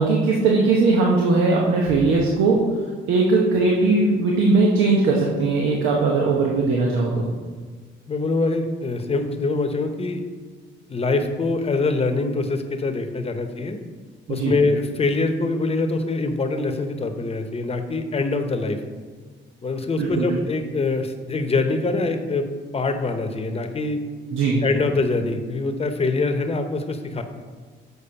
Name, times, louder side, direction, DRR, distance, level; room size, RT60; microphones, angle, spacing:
voice 1, 0.0-2.7 3.1-7.3 14.3-14.6 20.0-20.4 24.3-24.6, right 3 dB, 90° right, -2 dB, 1.0 m, -19 dB
voice 2, 8.1-10.2 10.9-13.8 14.3-18.8 19.6-22.5 22.7-24.0 24.6-27.2, left 3 dB, 30° left, 6 dB, 0.9 m, -24 dB
6.9 x 4.6 x 5.7 m, 1.5 s
cardioid pair, 90°, 20 cm